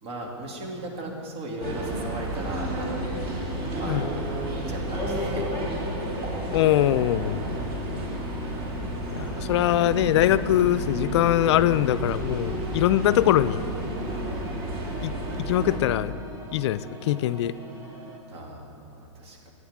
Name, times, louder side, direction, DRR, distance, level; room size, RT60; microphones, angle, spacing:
voice 1, 0.0-3.2 3.7-4.1 4.7-5.5 6.4-7.5 9.3-9.6 18.3-19.5, right 1 dB, 55° right, 0 dB, 2.6 m, -37 dB
sound 1, 1.6-15.8, right 1 dB, 35° right, 2.4 m, -31 dB
voice 2, 6.5-7.4 9.2-13.6 15.0-15.1 15.5-16.1 16.5-17.5, left 12 dB, 60° left, 16 dB, 0.4 m, -22 dB
sound 2, 10.6-18.2, equal, 20° right, 1.7 m, -41 dB
15.5 x 9.4 x 3.6 m, 2.7 s
hypercardioid pair, 120°, 16 cm